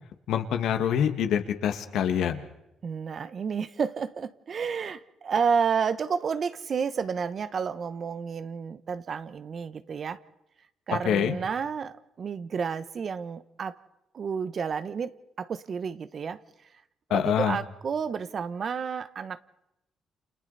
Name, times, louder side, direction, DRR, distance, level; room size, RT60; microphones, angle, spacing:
voice 1, 0.3-2.4 11.0-11.4 17.1-17.6, left 9 dB, 80° left, 1.9 m, -25 dB
voice 2, 2.8-10.2 10.9-13.8 14.1-16.4 17.1-19.4, right 6 dB, 50° right, 1.1 m, -30 dB
30.0 x 28.0 x 4.2 m
cardioid pair, 90°, 0 cm